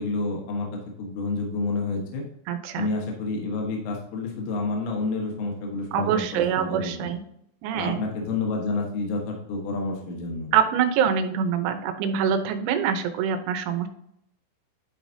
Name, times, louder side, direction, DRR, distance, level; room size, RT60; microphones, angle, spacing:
voice 1, 0.0-2.2 2.8-7.1 7.7-10.5, left 3 dB, 75° left, 0 dB, 3.7 m, -29 dB
voice 2, 2.5-2.9 5.9-7.2 7.6-8.0 10.5-13.9, right 8 dB, 85° right, 7 dB, 3.6 m, -25 dB
11.5 x 4.9 x 2.7 m, 0.74 s
omnidirectional pair, 5.9 m